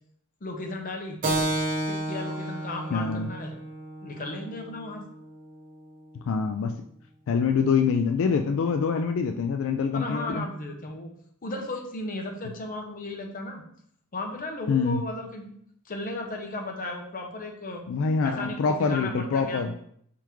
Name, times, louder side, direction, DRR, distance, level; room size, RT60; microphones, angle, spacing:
voice 1, 0.4-1.2 1.9-3.5 4.0-5.1 9.9-11.1 11.4-13.6 14.1-15.5 15.8-17.9 18.2-19.8, left 2 dB, 40° left, 3 dB, 0.7 m, -35 dB
Keyboard (musical), 1.2-6.3, right 1 dB, 40° right, 0.9 m, -32 dB
voice 2, 2.9-3.3 6.3-6.8 7.3-10.4 14.7-15.0 17.9-19.7, left 5 dB, 60° left, 6 dB, 0.3 m, -25 dB
4.6 x 3.5 x 3.0 m, 0.66 s
head